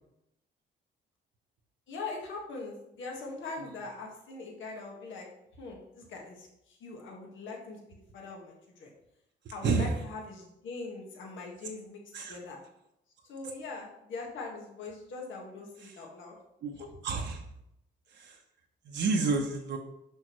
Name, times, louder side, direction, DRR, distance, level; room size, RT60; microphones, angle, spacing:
voice 1, 1.9-5.3 5.6-7.8 8.1-8.9 9.5-12.0 12.3-12.6 13.2-16.3 16.7-16.9, left 3 dB, 75° left, -1 dB, 1.7 m, -42 dB
voice 2, 9.6-9.9 12.1-12.4 15.8-16.0 16.6-16.7 17.0-17.4 18.1-18.4 18.9-19.8, right 4 dB, 65° right, 2 dB, 0.8 m, -29 dB
6.3 x 5.8 x 3.1 m, 0.83 s
cardioid pair, 90°, 20 cm